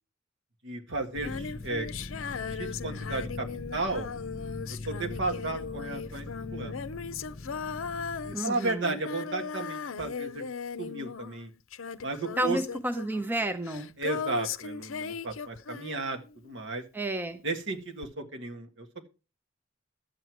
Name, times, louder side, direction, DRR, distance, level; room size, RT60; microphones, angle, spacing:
voice 1, 0.6-1.9 2.5-3.5 3.7-4.1 4.8-6.8 8.2-10.4 10.8-11.5 12.0-12.6 14.0-16.8 17.4-19.1, right 3 dB, 60° right, 1.6 m, -34 dB
Female singing, 1.1-16.5 18.0-18.1, left 6 dB, 75° left, 0.6 m, -38 dB
sound 1, 1.1-8.4, left 2 dB, 30° left, 1.1 m, -41 dB
voice 2, 8.3-9.0 12.4-13.9 16.9-17.4, right 1 dB, 10° right, 0.7 m, -31 dB
11.0 x 7.8 x 4.6 m
head